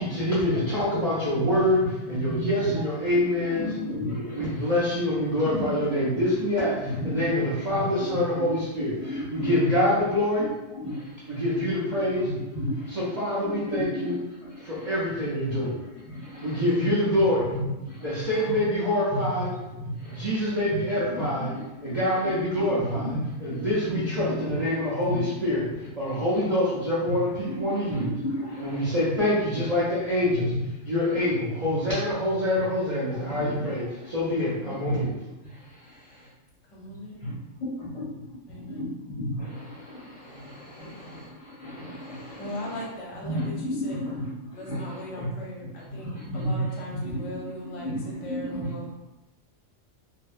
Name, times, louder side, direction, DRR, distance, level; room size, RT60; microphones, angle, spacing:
voice 1, 0.0-3.7 4.3-10.5 11.3-12.3 12.9-14.2 14.6-15.8 16.4-17.5 18.0-19.5 20.1-21.5 21.8-23.1 23.4-25.7 25.9-28.1 28.6-30.5 30.8-35.1, left 1 dB, 45° right, -9 dB, 0.6 m, -26 dB
voice 2, 2.1-2.8 3.0-4.7 5.4-6.2 6.8-7.8 9.0-9.7 10.8-11.4 11.9-12.0 12.2-13.1 13.4-15.0 15.4-15.7 16.1-16.6 17.5-18.3 19.1-19.2 19.7-22.0 22.2-22.3 22.7-24.6 25.0-25.2 27.1-27.2 27.4-27.6 27.9-29.0 29.5-29.6 30.4-30.6 31.4-32.0 33.1-33.7 34.0-34.1 34.4-35.0 35.4-36.3 37.2-38.2 38.6-42.8 43.2-45.3 45.9-46.6 46.9-47.2 47.8-48.7, equal, 30° left, -7 dB, 0.6 m, -33 dB
voice 3, 36.7-37.3 38.5-38.9 40.8-40.9 42.4-44.0 44.5-48.9, equal, 75° left, -3 dB, 1.0 m, -39 dB
2.6 x 2.0 x 2.4 m, 1.0 s
omnidirectional pair, 1.3 m